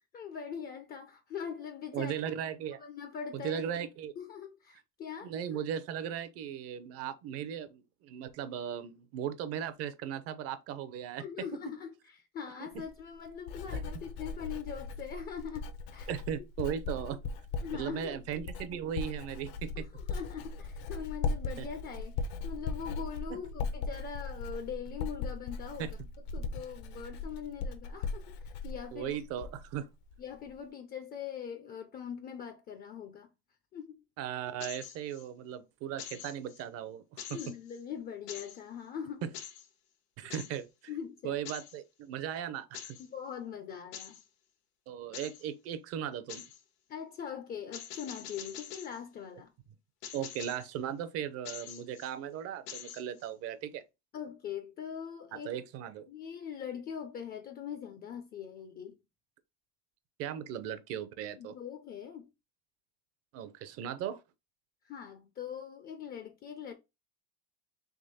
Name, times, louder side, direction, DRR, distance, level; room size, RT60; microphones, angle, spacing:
voice 1, 0.1-2.1 2.8-3.7 4.2-5.3 11.2-16.1 17.6-18.2 19.8-26.0 26.3-29.2 30.2-33.3 33.7-34.0 37.3-39.2 40.2-40.3 40.9-41.4 43.0-44.2 46.9-49.5 54.1-55.5 56.1-59.0 61.4-62.3 64.8-66.7, left 8 dB, 30° left, 0.4 m, -42 dB
voice 2, 1.9-2.8 3.3-4.1 5.2-11.2 13.7-13.8 16.1-17.2 17.7-19.9 21.6-21.7 23.3-23.4 25.8-25.9 28.9-29.9 34.2-37.4 39.2-39.3 40.2-40.7 41.2-43.0 44.9-46.4 50.1-53.8 55.4-56.1 60.2-61.5 63.3-64.2, right 9 dB, 50° right, 0.6 m, -37 dB
Writing, 12.7-29.8 30.1-30.5, left 4 dB, 75° left, 0.8 m, -38 dB
sound 1, 34.6-35.3 36.0-36.6 37.2-37.8 38.3-38.6 39.3-39.7 40.3-40.6 41.5-41.8 42.7-43.1 43.9-44.2 45.1-45.5 46.3-46.6 47.7-49.0 50.0-50.7 51.5-52.1 52.7-53.3, left 9 dB, 90° left, 1.2 m, -45 dB
3.6 x 3.0 x 4.0 m
cardioid pair, 145°, 32 cm